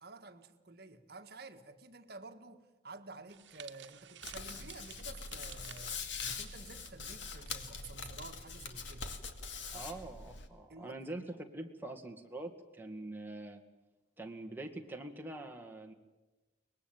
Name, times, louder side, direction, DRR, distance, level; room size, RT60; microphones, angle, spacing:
voice 1, 0.0-9.1 9.7-9.9 10.7-11.1, right 3 dB, 55° right, 1.7 m, -51 dB
sound 1, 3.3-7.5 7.8-8.1 8.9-9.2, right 10 dB, 75° right, 1.3 m, -54 dB
Hands, 4.2-10.5, left 5 dB, 80° left, 2.2 m, -43 dB
voice 2, 9.7-13.6 14.2-15.9, right 2 dB, 10° right, 2.1 m, -44 dB
23.5 x 20.5 x 9.0 m
head